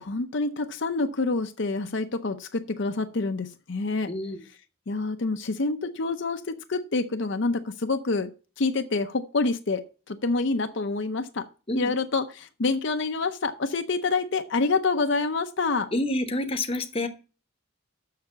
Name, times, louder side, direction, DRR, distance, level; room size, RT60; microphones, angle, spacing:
voice 1, 0.0-4.1 4.9-8.3 8.6-11.5 11.8-15.9, left 3 dB, 55° left, 0.7 m, -27 dB
voice 2, 4.1-4.5 11.7-11.9 15.9-17.1, left 1 dB, 25° left, 0.9 m, -28 dB
6.7 x 6.7 x 7.1 m
head